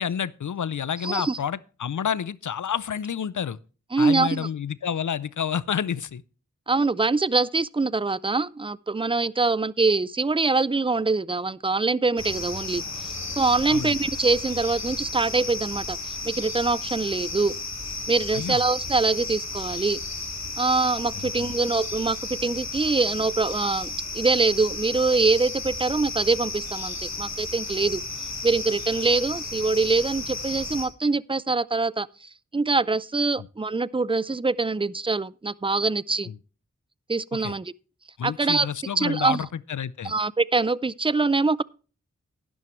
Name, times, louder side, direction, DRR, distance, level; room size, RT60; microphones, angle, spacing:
voice 1, 0.0-3.6 4.0-6.2 13.7-14.0 18.3-18.6 21.4-21.5 33.4-33.5 36.3-36.4 37.3-37.6 38.2-40.1, left 8 dB, 85° left, 0.5 m, -29 dB
voice 2, 1.0-1.4 3.9-4.5 6.7-17.6 18.1-20.0 20.6-28.0 28.4-32.1 32.5-36.3 37.1-37.7 38.2-38.7 39.0-39.4 40.0-41.6, right 3 dB, 20° right, 0.4 m, -24 dB
sound 1, 12.2-30.9, left 3 dB, 65° left, 2.5 m, -34 dB
11.5 x 11.0 x 3.1 m
wide cardioid pair, 50°, 29 cm